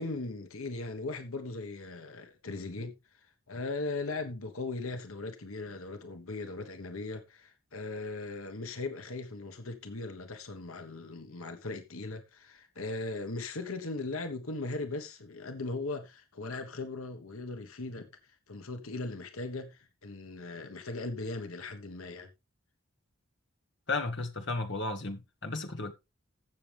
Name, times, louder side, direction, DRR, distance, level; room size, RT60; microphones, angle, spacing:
voice 1, 0.0-18.1 18.5-22.3, left 3 dB, 80° left, 1.3 m, -38 dB
voice 2, 23.9-25.9, left 3 dB, 55° left, 1.6 m, -34 dB
15.0 x 6.6 x 3.5 m
head